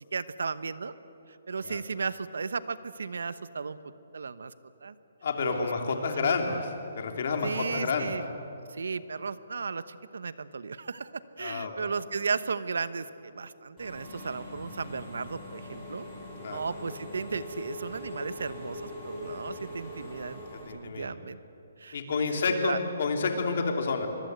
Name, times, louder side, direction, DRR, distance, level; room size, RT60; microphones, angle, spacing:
voice 1, 0.1-0.9 1.3-3.8 4.1-4.5 4.8-4.9 5.4-5.7 6.2-6.6 7.4-8.2 8.7-16.1 16.5-21.4 21.8-22.8, right 5 dB, 85° right, 14 dB, 1.1 m, -35 dB
voice 2, 5.2-6.7 7.0-8.2 11.4-11.7 16.4-16.6 20.7-21.2 21.9-24.1, left 4 dB, 45° left, 4 dB, 3.0 m, -29 dB
Engine / Mechanisms, 13.8-20.6, left 1 dB, 5° left, 7.1 m, -42 dB
25.0 x 22.0 x 8.1 m, 2.8 s
hypercardioid pair, 175°, 0 cm